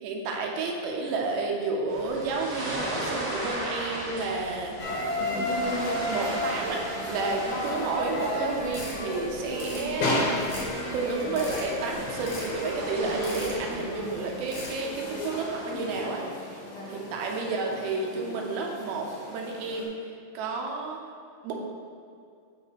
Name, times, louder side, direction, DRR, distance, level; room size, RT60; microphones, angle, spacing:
voice 1, 0.0-5.5 6.1-10.3 10.9-16.6 16.9-20.0 20.3-21.0 21.4-21.5, right 3 dB, 80° right, 1 dB, 2.9 m, -31 dB
sound 1, 1.9-16.2, right 1 dB, 50° right, 2.2 m, -38 dB
sound 2, 4.8-19.8, left 1 dB, 85° left, 1.4 m, -33 dB
sound 3, 8.6-9.0 9.4-9.9 10.4-10.8 11.2-11.7 12.2-12.6 13.1-13.6 14.4-14.8, left 2 dB, 55° left, 1.6 m, -40 dB
7.5 x 5.3 x 5.1 m, 2.3 s
omnidirectional pair, 5.2 m